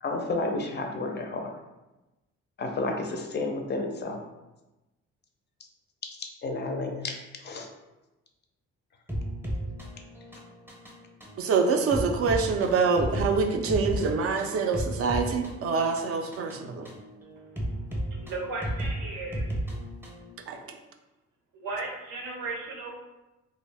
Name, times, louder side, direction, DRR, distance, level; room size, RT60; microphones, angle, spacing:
voice 1, 0.0-1.5 2.6-4.2 6.2-7.1 7.4-7.7, left 2 dB, 35° left, 3 dB, 0.4 m, -31 dB
sound 1, 9.1-20.3, right 1 dB, 10° right, 0.6 m, -34 dB
voice 2, 11.4-16.9 20.5-20.8, right 4 dB, 50° right, 5 dB, 0.4 m, -26 dB
voice 3, 18.2-19.5 21.5-22.9, right 3 dB, 80° right, -1 dB, 0.7 m, -35 dB
2.3 x 2.0 x 3.3 m, 1.0 s
cardioid pair, 90°, 30 cm